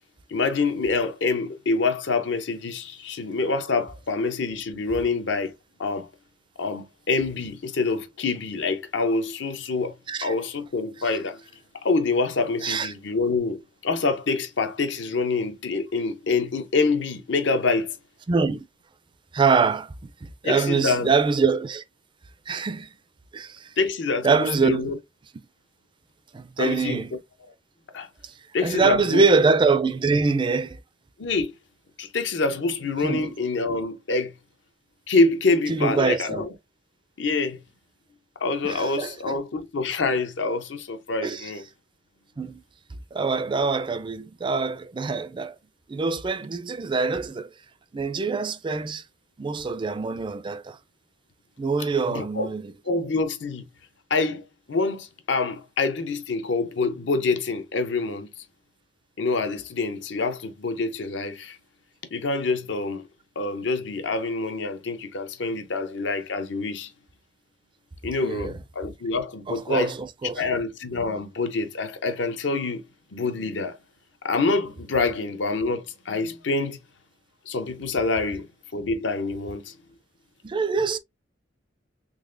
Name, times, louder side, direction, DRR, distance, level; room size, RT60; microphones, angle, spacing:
voice 1, 0.3-5.5 5.8-6.1 6.6-10.0 10.2-11.4 11.8-18.0 20.4-21.1 23.8-25.0 26.6-27.0 27.9-28.1 28.5-29.2 31.2-31.5 32.0-34.3 35.1-36.5 37.2-37.6 38.4-41.6 52.1-52.5 52.9-53.7 54.1-58.4 59.2-61.6 62.1-63.1 63.4-66.9 68.0-69.9 70.3-72.8 73.1-73.8 74.2-76.8 77.5-78.5 78.7-79.8, left 3 dB, 70° left, 0.7 m, -26 dB
voice 2, 18.3-18.6 19.3-21.8 22.5-22.9 23.3-23.7 24.2-24.9 26.3-27.1 28.2-28.3 28.6-30.8 33.0-33.3 35.7-36.5 38.6-39.4 41.2-41.5 42.4-42.6 43.1-45.6 45.9-47.5 47.9-49.0 49.4-50.8 51.6-52.6 68.2-68.6 69.5-70.4 80.4-81.0, right 4 dB, 25° right, 0.4 m, -24 dB
3.9 x 3.2 x 2.5 m
head